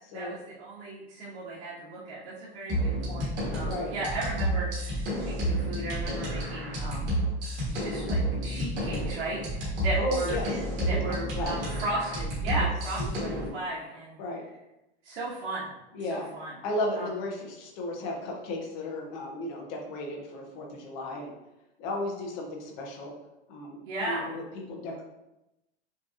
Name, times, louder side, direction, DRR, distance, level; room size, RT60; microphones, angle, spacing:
voice 1, 0.1-7.1 7.6-14.2 15.0-15.7 16.0-16.5 16.9-17.1 23.8-24.3, right 2 dB, 90° right, -9 dB, 1.4 m, -36 dB
sound 1, 2.7-13.5, right 1 dB, 25° right, 1.4 m, -30 dB
voice 2, 3.6-3.9 10.0-10.5 10.8-11.0 11.4-11.5 12.6-12.7 13.0-13.3 14.2-14.4 15.9-16.3 16.6-21.3 21.8-23.1 23.5-25.0, left 1 dB, 20° left, 1 dB, 0.3 m, -34 dB
6.2 x 2.7 x 2.3 m, 0.92 s
supercardioid pair, 175°, 32 cm